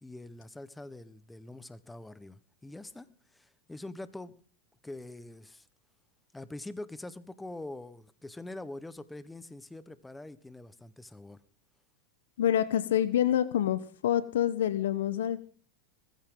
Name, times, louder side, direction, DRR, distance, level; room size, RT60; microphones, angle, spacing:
voice 1, 0.0-4.3 4.8-5.7 6.3-11.4, left 2 dB, 10° left, 1.2 m, -44 dB
voice 2, 12.4-15.5, left 11 dB, 75° left, 1.0 m, -27 dB
21.5 x 15.0 x 3.9 m
hypercardioid pair, 100°, 0 cm